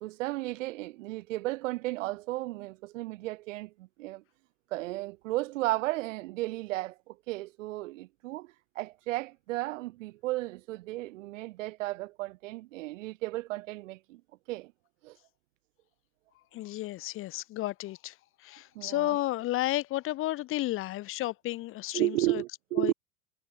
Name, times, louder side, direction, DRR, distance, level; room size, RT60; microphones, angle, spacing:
voice 1, 0.0-4.2 4.7-14.2 14.5-14.7 15.0-15.2 18.7-19.2 21.9-22.9, right 18 dB, 65° right, 0.8 m, -34 dB
voice 2, 16.5-18.1 18.4-22.4 22.8-22.9, left 16 dB, 30° left, 0.6 m, -32 dB
hypercardioid pair, 85°, 42 cm